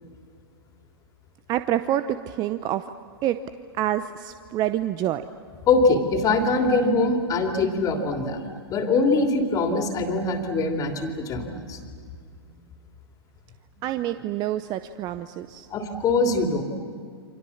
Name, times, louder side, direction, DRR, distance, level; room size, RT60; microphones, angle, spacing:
voice 1, 1.5-2.9 3.2-3.4 3.8-5.2 13.8-15.7, right 12 dB, 30° right, 11 dB, 0.7 m, -27 dB
voice 2, 5.7-8.4 8.7-11.8 15.7-16.6, left 3 dB, 25° left, 4 dB, 3.1 m, -23 dB
29.0 x 25.5 x 7.3 m, 2.2 s
hypercardioid pair, 115°, 14 cm